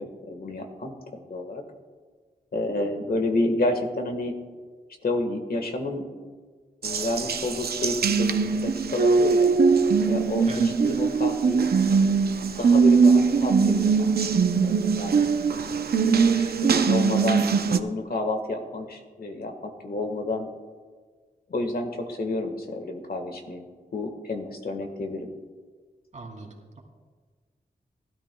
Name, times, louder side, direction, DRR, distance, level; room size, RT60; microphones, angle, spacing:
voice 1, 0.0-1.6 2.5-4.3 5.0-6.1 6.8-9.5 10.1-11.7 12.6-14.1 14.6-15.3 16.0-20.5 21.5-23.6 23.9-25.3, left 2 dB, 70° left, 4 dB, 1.5 m, -30 dB
Water tap faucet, 6.8-17.8, right 5 dB, 75° right, 0.6 m, -21 dB
voice 2, 26.1-26.5, right 3 dB, 50° right, 0 dB, 2.7 m, -38 dB
19.0 x 13.0 x 2.3 m, 1.5 s
wide cardioid pair, 115°, 16 cm